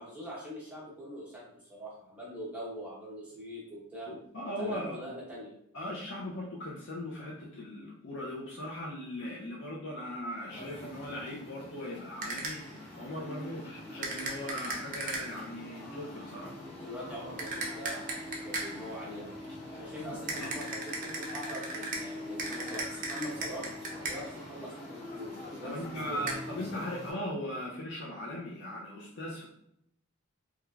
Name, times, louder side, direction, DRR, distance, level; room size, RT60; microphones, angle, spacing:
voice 1, 0.0-4.1 4.6-5.5 16.8-19.4 19.7-23.7 24.0-26.2, equal, 5° right, -6 dB, 0.8 m, -43 dB
voice 2, 4.1-4.9 5.7-16.5 20.0-20.5 25.6-29.5, left 1 dB, 55° left, -5 dB, 0.5 m, -39 dB
sound 1, 10.5-27.1, left 1 dB, 30° left, 0.9 m, -44 dB
sound 2, 12.2-12.8 14.0-15.5 17.4-18.9 20.3-24.4 26.3-26.4, right 3 dB, 40° right, 0.5 m, -37 dB
3.1 x 2.3 x 2.3 m, 0.74 s
head